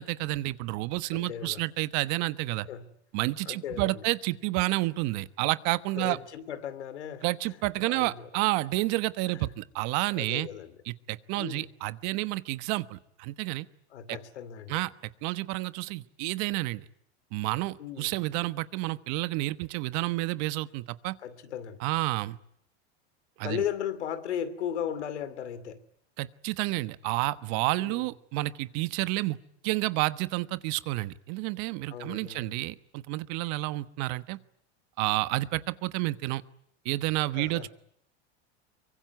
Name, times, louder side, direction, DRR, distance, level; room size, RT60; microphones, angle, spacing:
voice 1, 0.0-2.7 3.1-6.2 7.2-10.5 10.9-13.7 14.1-14.2 14.7-14.9 15.2-16.8 17.3-21.2 21.8-22.4 23.4-23.6 26.2-29.4 29.6-34.4 35.0-36.4 36.8-37.7, right 20 dB, 55° right, 1.3 m, -30 dB
voice 2, 1.1-1.6 2.7-2.9 3.5-4.0 5.9-7.6 7.9-8.3 9.3-9.5 10.1-10.8 11.3-11.7 13.9-14.8 17.8-18.1 21.2-21.8 23.4-25.8 27.8-28.1 31.9-32.5 37.3-37.7, left 9 dB, 90° left, 2.6 m, -36 dB
24.0 x 23.5 x 9.5 m
hypercardioid pair, 110°, 33 cm